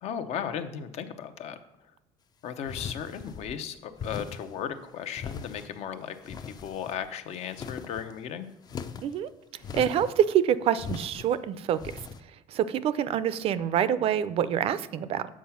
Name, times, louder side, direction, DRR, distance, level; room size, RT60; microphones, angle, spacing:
voice 1, 0.0-1.6 2.4-8.5, left 8 dB, 65° left, 9 dB, 0.7 m, -36 dB
sound 1, 2.7-3.6 4.0-4.5 5.1-5.8 6.2-7.1 7.4-8.1 8.7-9.2 9.6-10.2 10.8-11.3 11.8-12.2, left 6 dB, 35° left, 0.5 m, -39 dB
voice 2, 9.7-12.0 12.5-15.3, right 9 dB, 55° right, 15 dB, 0.4 m, -26 dB
7.4 x 4.7 x 5.7 m, 0.93 s
cardioid pair, 115°, 12 cm